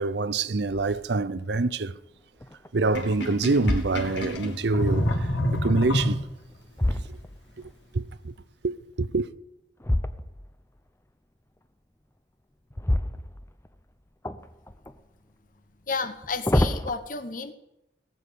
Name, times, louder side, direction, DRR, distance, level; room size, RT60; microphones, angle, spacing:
voice 1, 0.0-1.9 2.7-6.2 6.9-7.2 7.9-8.3 8.6-9.3, right 3 dB, 65° right, 0.6 m, -26 dB
sound 1, 0.7-1.1 1.7-1.8 2.4-3.0 3.5-4.4 6.1-7.8 9.8-10.6 12.7-13.8 14.2-15.0 16.0-16.9, left 1 dB, 15° left, 0.7 m, -28 dB
Sink (filling or washing), 2.8-6.6, equal, 75° left, 2.3 m, -28 dB
voice 2, 15.9-17.5, left 4 dB, 45° left, 1.0 m, -31 dB
18.0 x 7.3 x 8.4 m
head